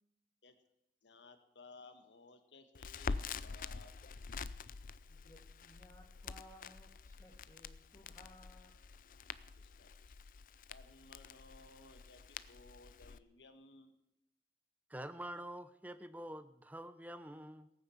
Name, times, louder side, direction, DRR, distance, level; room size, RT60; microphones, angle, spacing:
voice 1, 1.0-3.9 9.6-9.9 10.7-13.9, left 3 dB, 85° left, 8 dB, 1.6 m, -59 dB
Crackle, 2.8-13.2, left 4 dB, 50° left, 0.5 m, -46 dB
voice 2, 5.1-8.7, left 1 dB, 20° left, 0 dB, 2.8 m, -60 dB
voice 3, 14.9-17.7, right 1 dB, 10° right, 12 dB, 0.7 m, -47 dB
17.5 x 9.5 x 7.2 m, 0.86 s
head